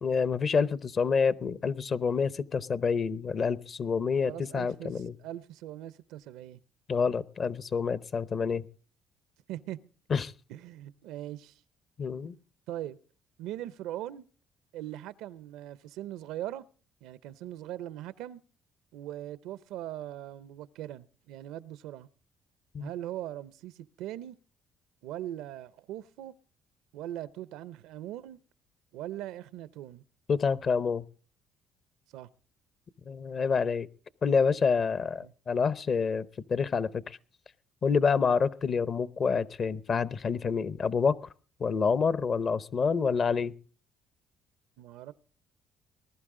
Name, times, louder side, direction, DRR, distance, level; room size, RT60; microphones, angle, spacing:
voice 1, 0.0-5.1 6.9-8.6 10.1-10.3 12.0-12.4 22.7-22.9 30.3-31.0 33.1-33.9 34.2-37.2 37.8-41.2 41.6-43.5, left 5 dB, 45° left, 0.7 m, -27 dB
voice 2, 4.2-6.6 9.5-9.8 10.5-11.6 12.7-13.0 13.4-14.2 14.7-16.6 17.0-18.4 18.9-22.1 22.8-24.4 25.0-26.3 26.9-28.4 28.9-30.0 32.1-32.3 35.2-35.3 44.8-45.1, right 13 dB, 90° right, 0.6 m, -40 dB
20.5 x 11.5 x 3.7 m
cardioid pair, 100°, 0 cm